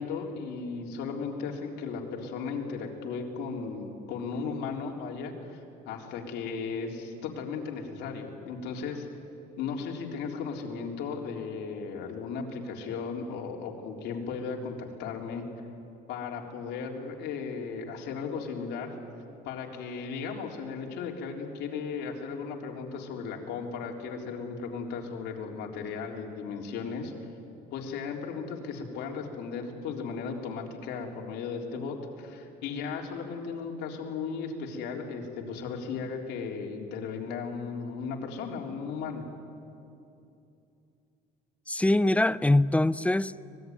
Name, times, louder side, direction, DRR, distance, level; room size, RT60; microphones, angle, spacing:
voice 1, 0.0-5.6 5.9-9.1 9.6-15.4 16.1-19.0 19.4-27.1 27.7-39.3, left 5 dB, 85° left, 1 dB, 3.7 m, -36 dB
voice 2, 41.7-43.5, left 1 dB, 10° left, 17 dB, 0.5 m, -23 dB
25.0 x 20.5 x 9.6 m, 2.7 s
cardioid pair, 110°, 17 cm